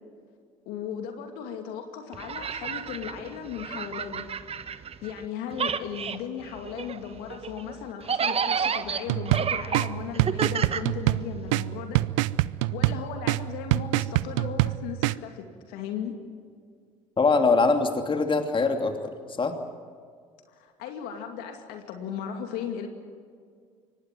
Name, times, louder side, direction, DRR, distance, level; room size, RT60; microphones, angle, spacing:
voice 1, 0.7-4.3 5.0-12.0 12.7-16.1 20.6-22.9, left 8 dB, 70° left, 5 dB, 2.4 m, -36 dB
sound 1, 2.1-5.2 5.5-11.5, right 6 dB, 40° right, 1.3 m, -31 dB
sound 2, 9.1-15.2, right 18 dB, 80° right, 0.5 m, -26 dB
voice 2, 17.2-19.5, left 4 dB, 30° left, 5 dB, 2.9 m, -23 dB
24.5 x 19.0 x 9.2 m, 2.1 s
hypercardioid pair, 60°, 16 cm